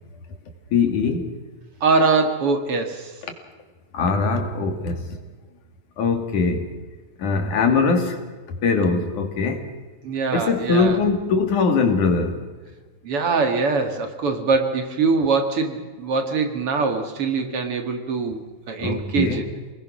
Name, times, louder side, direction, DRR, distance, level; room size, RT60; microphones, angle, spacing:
voice 1, 0.7-1.3 3.9-5.2 6.0-6.7 7.2-8.2 8.6-9.7 10.3-12.5 18.8-19.5, left 4 dB, 85° left, 5 dB, 4.0 m, -21 dB
voice 2, 1.8-3.1 10.0-11.0 13.0-19.4, right 4 dB, 50° right, 5 dB, 2.7 m, -23 dB
28.5 x 20.0 x 6.4 m, 1.3 s
omnidirectional pair, 3.4 m